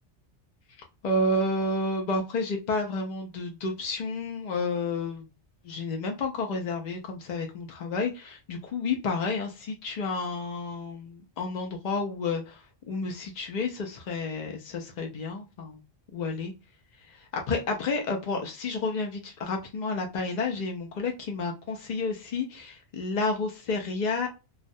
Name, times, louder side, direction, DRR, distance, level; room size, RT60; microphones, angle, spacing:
voice 1, 1.0-5.3 5.6-15.8 16.1-16.5 17.1-24.3, left 3 dB, 60° left, 2 dB, 0.4 m, -30 dB
2.3 x 2.1 x 2.6 m, 0.29 s
omnidirectional pair, 1.2 m